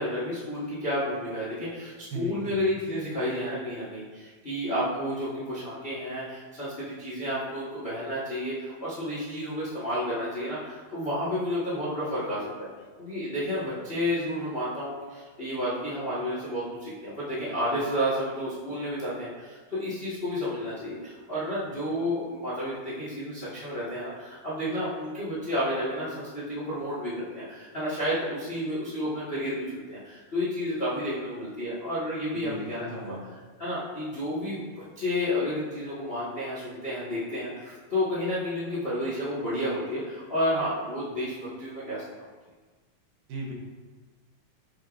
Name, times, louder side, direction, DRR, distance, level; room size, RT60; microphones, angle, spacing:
voice 1, 0.0-12.7 13.0-33.1 33.6-34.7 34.9-42.1, equal, 55° left, -8 dB, 0.6 m, -31 dB
voice 2, 2.1-2.7 32.3-33.2 43.3-43.5, right 1 dB, 85° right, -1 dB, 3.0 m, -36 dB
8.0 x 7.0 x 2.5 m, 1.4 s
omnidirectional pair, 4.0 m